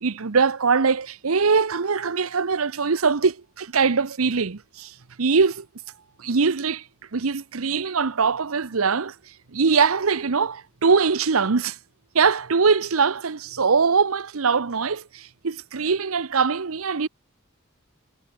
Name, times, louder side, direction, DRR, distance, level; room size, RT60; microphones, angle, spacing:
voice 1, 0.0-5.7 6.2-6.8 7.1-9.1 9.5-11.8 12.1-17.1, right 5 dB, 90° right, 0.9 m, -22 dB
head